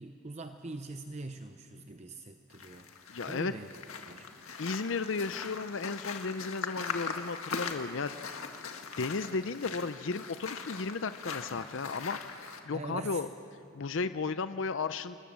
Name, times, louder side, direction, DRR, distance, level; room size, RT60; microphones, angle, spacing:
voice 1, 0.0-2.9 3.3-3.7 4.1-4.3 12.7-13.3, right 2 dB, 30° right, 7 dB, 0.7 m, -43 dB
sound 1, 2.5-12.6, left 5 dB, 80° left, 1.8 m, -41 dB
voice 2, 3.1-3.5 4.6-8.4 9.0-12.2 12.6-13.3 13.7-15.2, left 4 dB, 60° left, 12 dB, 0.6 m, -34 dB
29.0 x 20.5 x 7.4 m, 2.6 s
head